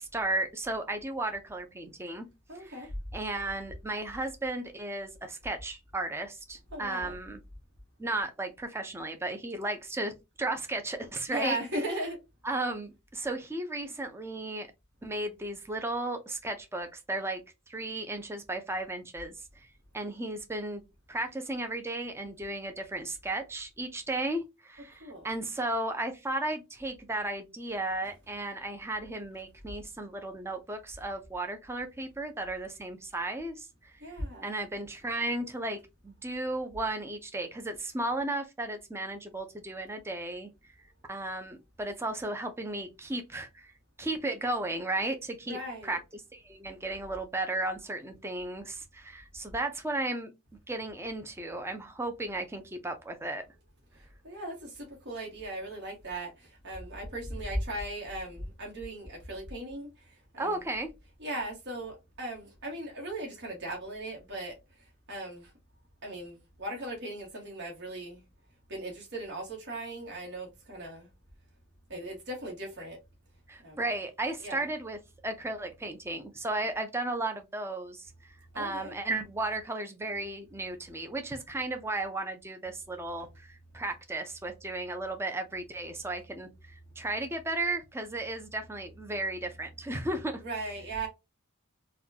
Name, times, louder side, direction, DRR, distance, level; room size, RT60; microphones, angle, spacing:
voice 1, 0.0-2.3 2.5-2.9 3.1-7.4 8.0-11.6 12.4-14.7 15.0-17.4 17.7-19.7 19.9-20.8 21.1-33.9 34.4-40.5 41.1-43.7 44.0-50.3 50.7-53.4 60.4-60.9 73.5-75.0 75.2-78.1 78.6-90.4, right 2 dB, 10° right, 0.5 m, -34 dB
voice 2, 2.5-2.9 6.7-7.2 11.3-12.2 25.0-25.3 34.0-34.5 45.5-46.0 54.2-59.9 60.3-60.6 61.2-64.5 65.1-65.5 66.0-68.2 68.7-71.1 71.9-73.0 73.6-73.8 74.4-74.7 78.5-78.9 90.4-91.1, right 1 dB, 55° right, 1.5 m, -38 dB
4.1 x 2.3 x 2.7 m
head